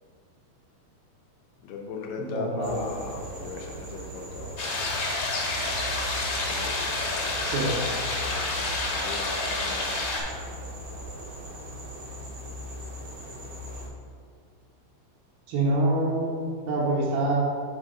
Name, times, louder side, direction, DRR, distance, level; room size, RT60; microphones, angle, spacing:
voice 1, 1.6-4.9 6.4-7.6 8.2-10.0, left 4 dB, 80° left, 1 dB, 2.4 m, -38 dB
voice 2, 2.2-2.8 7.4-7.7 15.5-17.4, right 2 dB, 80° right, -6 dB, 2.7 m, -26 dB
sound 1, 2.6-13.9, right 1 dB, 60° right, 0.9 m, -39 dB
sound 2, 4.6-10.2, left 2 dB, 60° left, 2.1 m, -29 dB
7.2 x 3.9 x 5.1 m, 2.1 s
omnidirectional pair, 4.1 m